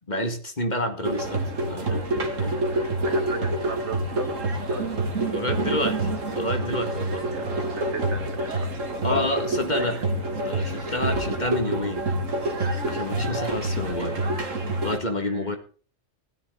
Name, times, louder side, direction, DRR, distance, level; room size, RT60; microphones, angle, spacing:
voice 1, 0.1-2.1 2.4-2.5 5.3-7.2 9.0-10.0 10.4-12.1 12.9-14.2 14.8-15.6, left 1 dB, 35° left, 6 dB, 2.1 m, -29 dB
sound 1, 1.0-15.0, right 2 dB, 85° right, 2.4 m, -27 dB
voice 2, 3.0-4.3 4.7-4.9 7.3-7.4 7.7-8.7 9.8-10.0 15.2-15.6, right 3 dB, 65° right, 7 dB, 2.2 m, -36 dB
15.5 x 13.5 x 3.8 m, 0.39 s
omnidirectional pair, 1.3 m